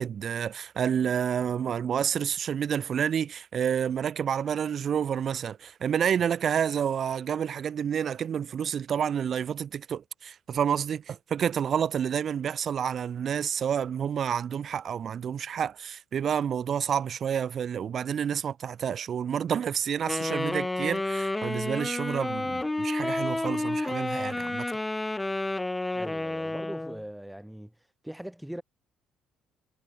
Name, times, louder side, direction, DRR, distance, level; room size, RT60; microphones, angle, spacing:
voice 1, 0.0-24.6, right 8 dB, 50° right, 1.4 m, -29 dB
Wind instrument woodwind instrument, 20.1-27.0, left 2 dB, 10° left, 0.7 m, -30 dB
voice 2, 25.9-27.7 28.0-28.6, equal, 5° right, 5.9 m, -40 dB
supercardioid pair, 90°, 0 cm